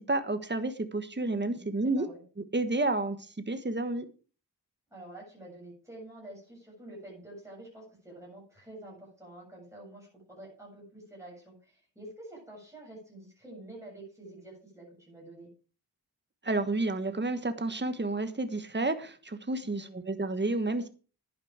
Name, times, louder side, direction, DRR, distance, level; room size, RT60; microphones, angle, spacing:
voice 1, 0.0-2.1 2.5-3.2 3.5-4.1 16.4-20.9, right 2 dB, 25° right, 10 dB, 1.4 m, -30 dB
voice 2, 1.5-2.2 4.9-15.5 19.6-20.2, right 1 dB, 5° right, -4 dB, 7.7 m, -48 dB
11.0 x 9.5 x 4.9 m, 0.37 s
wide cardioid pair, 55°, 40 cm